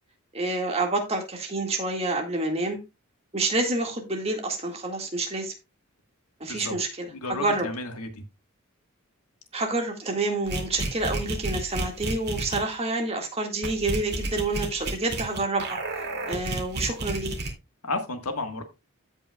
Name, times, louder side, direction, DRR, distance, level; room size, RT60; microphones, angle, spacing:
voice 1, 0.3-2.8 3.3-5.5 6.4-7.7 9.5-15.8 16.3-17.3, right 2 dB, 30° right, 1.9 m, -28 dB
voice 2, 6.5-6.8 7.1-8.2 17.8-18.6, left 2 dB, 90° left, 1.5 m, -32 dB
sound 1, 10.5-12.6 13.6-17.5, right 2 dB, 50° right, 2.4 m, -31 dB
15.5 x 5.5 x 2.3 m
head